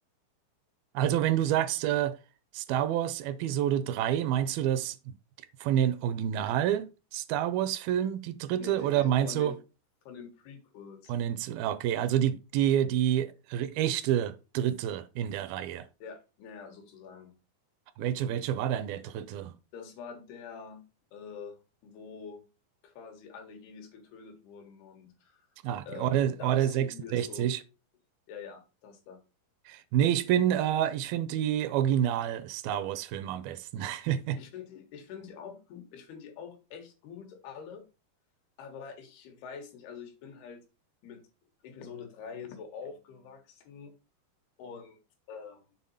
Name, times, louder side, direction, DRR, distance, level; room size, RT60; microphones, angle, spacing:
voice 1, 0.9-2.2 2.5-5.1 5.6-9.5 11.1-15.9 18.0-19.5 25.6-27.6 29.7-34.4, right 10 dB, 80° right, 2.3 m, -28 dB
voice 2, 8.5-9.6 10.1-11.1 16.0-17.3 19.7-20.8 21.1-22.4 22.8-25.5 25.9-27.5 28.3-29.2 34.4-37.9 38.6-40.6 41.0-41.3 41.6-43.9 44.6-45.0 45.3-45.7, left 6 dB, 90° left, 3.5 m, -45 dB
7.6 x 4.0 x 5.5 m
omnidirectional pair, 4.4 m